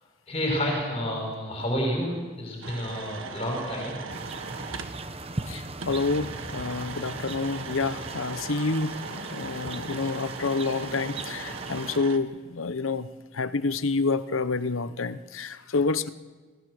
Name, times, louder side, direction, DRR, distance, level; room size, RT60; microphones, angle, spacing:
voice 1, 0.3-4.0, equal, 30° left, 1 dB, 5.5 m, -29 dB
sound 1, 2.6-5.0 5.8-12.2, right 5 dB, 85° right, 1.5 m, -40 dB
sound 2, 4.1-12.0, right 2 dB, 30° right, 1.0 m, -38 dB
voice 2, 5.5-13.1 13.3-16.1, left 3 dB, 85° left, 13 dB, 0.9 m, -28 dB
27.0 x 17.0 x 6.4 m, 1.4 s
head